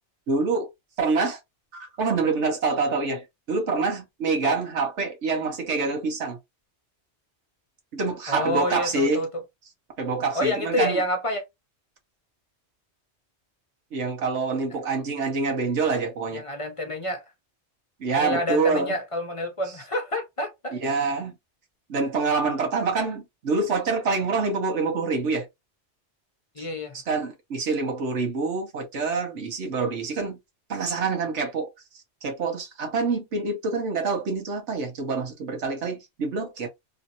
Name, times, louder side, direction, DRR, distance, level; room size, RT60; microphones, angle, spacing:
voice 1, 0.3-0.7 1.0-1.4 1.8-6.4 7.9-9.2 10.0-11.0 13.9-16.4 18.0-18.9 20.8-21.3 21.9-25.5 26.9-30.4 30.7-31.7 32.2-36.7, right 4 dB, 85° right, 1.4 m, -26 dB
voice 2, 8.3-9.4 10.3-11.4 16.3-17.2 18.2-20.8 26.6-27.0, left 1 dB, 35° left, 0.7 m, -28 dB
3.2 x 2.8 x 2.6 m
omnidirectional pair, 1.2 m